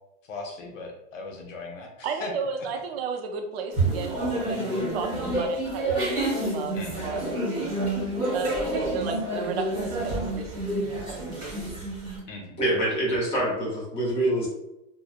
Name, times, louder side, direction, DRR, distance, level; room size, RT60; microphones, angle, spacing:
voice 1, 0.3-2.3 6.7-7.1 12.3-12.6, left 3 dB, 85° left, 1 dB, 0.8 m, -38 dB
voice 2, 2.0-7.8 8.3-11.5, right 5 dB, 55° right, 4 dB, 0.5 m, -34 dB
sound 1, 3.7-12.2, right 1 dB, 15° right, 0.9 m, -28 dB
voice 3, 12.6-14.5, right 1 dB, 15° left, -6 dB, 0.7 m, -25 dB
2.8 x 2.0 x 2.3 m, 0.88 s
supercardioid pair, 160°, 37 cm